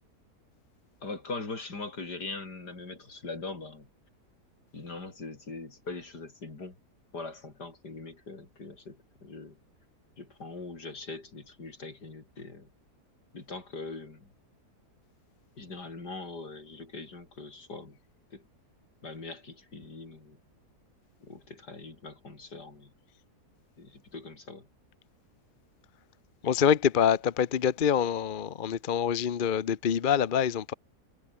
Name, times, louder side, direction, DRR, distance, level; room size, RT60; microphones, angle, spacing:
voice 1, 1.0-3.9 4.7-6.8 7.1-9.6 10.2-12.7 13.3-14.3 15.6-18.0 18.3-18.4 19.0-20.4 21.2-22.9 23.8-24.7, left 3 dB, 85° left, 4.9 m, -41 dB
voice 2, 26.4-30.7, left 8 dB, 40° left, 0.8 m, -26 dB
omnidirectional pair, 1.7 m